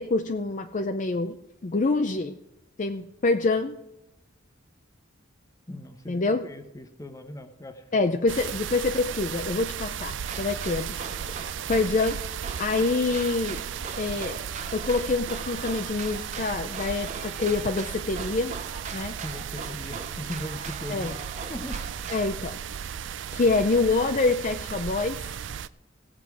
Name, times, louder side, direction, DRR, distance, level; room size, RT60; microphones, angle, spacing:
voice 1, 0.0-1.3 1.6-2.4 2.8-3.8 6.1-6.5 7.9-11.0 11.3-12.2 12.6-13.6 14.0-14.4 14.7-18.6 18.9-19.2 20.9-21.2 22.1-22.6 22.9-25.2, left 3 dB, 40° left, 6 dB, 0.5 m, -26 dB
voice 2, 5.7-8.1 19.2-21.1 21.5-21.8, left 1 dB, 15° left, 7 dB, 1.0 m, -39 dB
sound 1, 8.3-25.7, right 8 dB, 65° right, 0.4 m, -35 dB
sound 2, 10.2-22.3, right 5 dB, 35° right, 0.7 m, -41 dB
17.5 x 7.5 x 4.7 m, 0.89 s
head